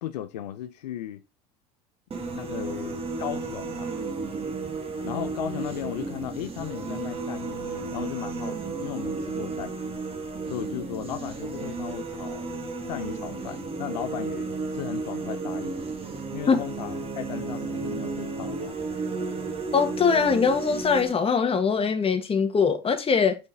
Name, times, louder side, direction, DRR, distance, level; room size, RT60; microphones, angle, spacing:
voice 1, 0.0-1.2 2.3-3.9 5.0-9.9 10.5-12.6 12.9-15.8 16.3-18.9, left 12 dB, 90° left, 0.6 m, -36 dB
sound 1, 2.1-21.1, right 3 dB, 30° right, 1.6 m, -33 dB
voice 2, 19.7-23.4, left 5 dB, 30° left, 1.6 m, -22 dB
5.3 x 5.1 x 4.0 m
hypercardioid pair, 85°, 20 cm